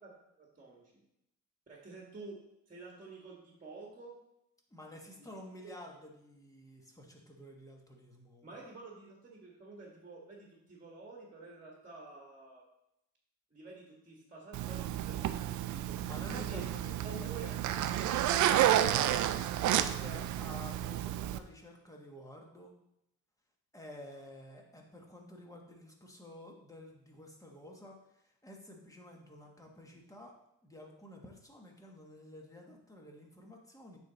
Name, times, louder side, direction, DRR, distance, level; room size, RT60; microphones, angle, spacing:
voice 1, 0.4-0.9 1.7-2.4 2.7-4.2 5.2-5.3 5.6-5.7 8.4-12.6 13.5-16.0 16.3-16.6 17.0-17.5, right 3 dB, 25° right, -2 dB, 1.6 m, -49 dB
voice 2, 4.7-8.5 16.0-19.3 19.7-22.7 23.7-30.3 30.6-34.0, left 1 dB, 10° left, 0 dB, 1.4 m, -51 dB
Zipper (clothing), 14.5-21.4, right 12 dB, 75° right, 0.5 m, -31 dB
8.7 x 3.6 x 4.0 m, 0.82 s
cardioid pair, 90°, 30 cm